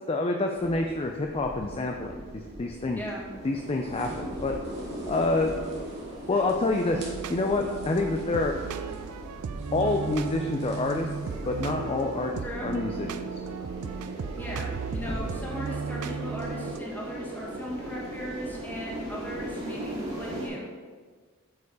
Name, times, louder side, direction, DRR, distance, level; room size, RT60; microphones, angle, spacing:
voice 1, 0.1-3.0 3.4-4.5 5.1-5.5 6.3-7.0 7.3-8.6 9.7-11.1 11.5-13.3 15.1-15.2, left 2 dB, 25° left, 3 dB, 0.4 m, -27 dB
sound 1, 0.5-20.5, right 1 dB, 25° right, 2.4 m, -39 dB
voice 2, 2.9-3.3 12.4-12.7 14.4-20.7, equal, 10° left, -4 dB, 1.6 m, -38 dB
sound 2, 3.0-16.5, right 1 dB, 50° right, 2.1 m, -49 dB
sound 3, 6.9-16.8, right 6 dB, 85° right, 0.4 m, -35 dB
8.4 x 4.6 x 4.8 m, 1.5 s
head